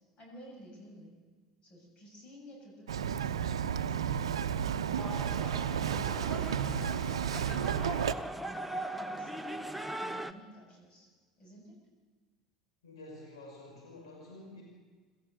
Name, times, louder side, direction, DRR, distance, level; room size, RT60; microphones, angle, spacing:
voice 1, 0.2-1.2 1.6-7.9 8.2-9.5 10.0-11.1 11.4-11.8, equal, 40° left, 0 dB, 7.6 m, -53 dB
Bird vocalization bird call bird song, 2.9-8.1, right 8 dB, 75° right, 0.8 m, -32 dB
sound 1, 5.0-10.3, right 1 dB, 5° right, 1.2 m, -40 dB
voice 2, 12.8-14.6, left 2 dB, 70° left, -1 dB, 5.7 m, -49 dB
27.0 x 13.5 x 8.1 m, 1.4 s
figure-of-eight pair, 70°, 3 cm